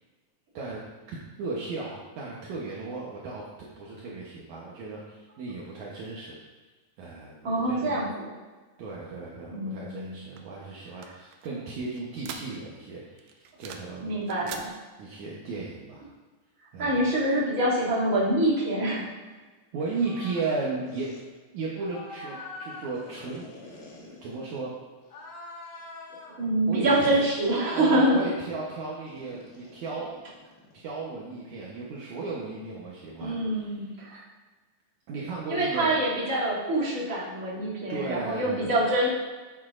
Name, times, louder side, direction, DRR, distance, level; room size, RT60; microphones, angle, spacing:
voice 1, 1.1-3.4 3.8-6.4 7.0-8.0 8.8-14.1 14.4-14.6 15.0-16.1 16.7-17.0 19.7-21.1 21.5-24.7 25.8-26.0 26.7-27.2 27.8-30.1 30.7-33.9 35.1-35.9 37.9-38.7, right 3 dB, 70° right, -4 dB, 2.2 m, -35 dB
voice 2, 7.4-8.3 9.5-10.1 14.0-14.7 16.8-19.1 26.4-28.2 33.2-34.2 35.5-39.1, right 1 dB, 25° right, -9 dB, 2.6 m, -25 dB
sound 1, 10.4-12.9 13.2-14.0 14.2-14.7, right 7 dB, 85° right, 2.3 m, -43 dB
sound 2, 20.0-20.6 20.9-21.2 21.8-24.6 25.0-26.4 26.9-28.0 29.1-30.9, left 2 dB, 60° left, 1.1 m, -45 dB
10.5 x 8.0 x 2.5 m, 1.3 s
omnidirectional pair, 3.9 m